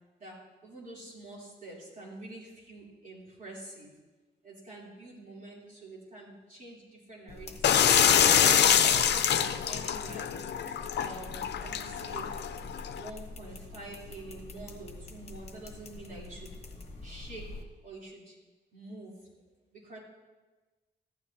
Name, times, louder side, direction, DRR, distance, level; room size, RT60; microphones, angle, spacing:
voice 1, 0.2-3.9 4.4-7.8 8.4-10.3 11.0-12.3 13.0-16.5 17.0-17.6 17.8-18.4 18.7-19.2 19.7-20.0, right 2 dB, 45° right, -5 dB, 3.6 m, -46 dB
sound 1, 7.3-17.6, left 3 dB, 35° left, 1.3 m, -46 dB
sound 2, 7.6-13.1, left 9 dB, 70° left, 0.6 m, -25 dB
15.0 x 12.0 x 2.9 m, 1.2 s
wide cardioid pair, 160°, 18 cm